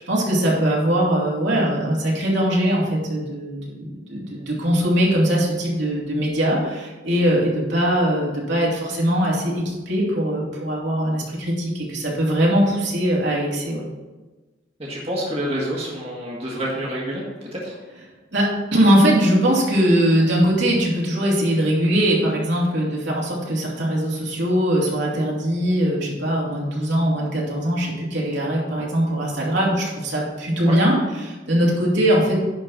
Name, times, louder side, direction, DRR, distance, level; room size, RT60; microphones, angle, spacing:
voice 1, 0.1-13.8 18.3-32.4, equal, 75° right, -4 dB, 2.9 m, -21 dB
voice 2, 14.8-17.3 17.5-17.8 30.6-30.8, equal, 35° right, -4 dB, 1.7 m, -28 dB
10.5 x 4.5 x 5.8 m, 1.2 s
head